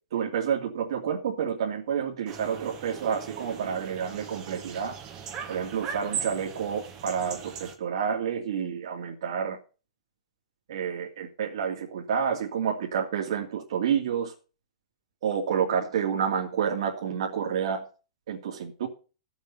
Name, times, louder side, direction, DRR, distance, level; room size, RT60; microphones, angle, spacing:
voice 1, 0.1-5.0 5.5-9.6 10.7-14.3 15.2-17.9 18.3-18.9, right 7 dB, 55° right, -1 dB, 2.7 m, -29 dB
sound 1, 2.3-7.7, right 7 dB, 20° right, 1.6 m, -39 dB
15.5 x 7.3 x 5.6 m, 0.34 s
hypercardioid pair, 175°, 3 cm